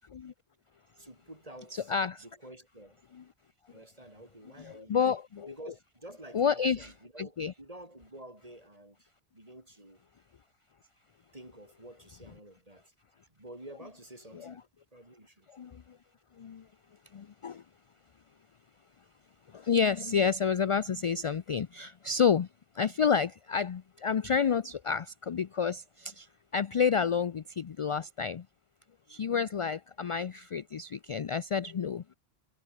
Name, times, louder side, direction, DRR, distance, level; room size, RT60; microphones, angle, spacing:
voice 1, 1.0-1.9 2.2-3.0 3.7-5.0 5.5-9.1 9.3-10.0 11.3-12.9 13.3-14.6 14.9-15.5, right 1 dB, 35° right, 5.7 m, -49 dB
voice 2, 1.7-2.2 3.1-3.2 4.6-5.5 6.3-7.5 14.3-14.5 15.5-16.0 16.4-16.7 17.1-17.6 19.5-22.5 22.7-28.5 29.1-32.1, left 6 dB, 45° left, 0.4 m, -30 dB
omnidirectional pair, 1.0 m